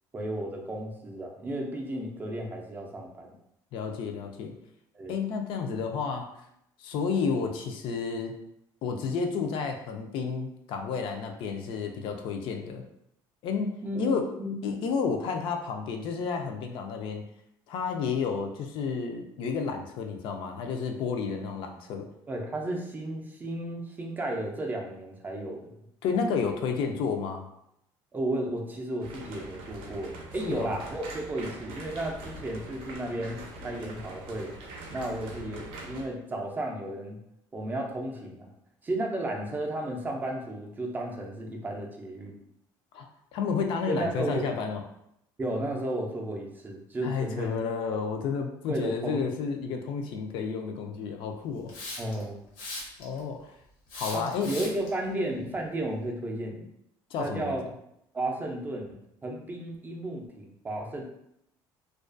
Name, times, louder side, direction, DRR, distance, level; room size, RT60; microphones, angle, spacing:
voice 1, 0.1-3.4 4.9-5.2 13.8-14.8 22.3-25.8 28.1-34.5 34.9-37.2 37.5-38.5 38.8-42.4 43.9-44.5 45.4-47.6 48.7-49.2 52.0-52.4 54.1-56.6 57.2-57.6 58.1-61.0, right 1 dB, 20° right, 0 dB, 0.4 m, -33 dB
voice 2, 3.7-4.5 5.1-6.3 6.8-8.3 8.8-12.8 13.4-14.2 14.6-17.3 17.7-22.1 26.0-27.5 30.4-30.7 42.9-43.1 43.3-44.8 47.0-51.7 53.0-53.5 54.0-54.5 57.1-57.6, left 5 dB, 65° left, 4 dB, 0.4 m, -31 dB
sound 1, 29.0-36.0, right 1 dB, 80° right, 0.5 m, -43 dB
Hiss, 51.7-52.2 52.6-53.2 53.9-54.9, left 2 dB, 90° left, 0.8 m, -38 dB
2.3 x 2.2 x 2.4 m, 0.77 s
cardioid pair, 135°, 9 cm